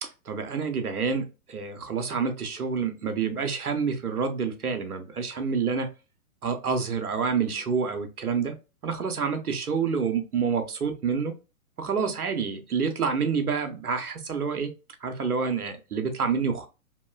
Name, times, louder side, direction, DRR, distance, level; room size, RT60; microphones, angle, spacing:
voice 1, 0.0-5.9 6.4-8.6 8.8-11.3 11.8-14.7 15.0-16.7, right 5 dB, 90° right, 0.8 m, -28 dB
2.9 x 2.8 x 2.2 m
figure-of-eight pair, 120°, 43 cm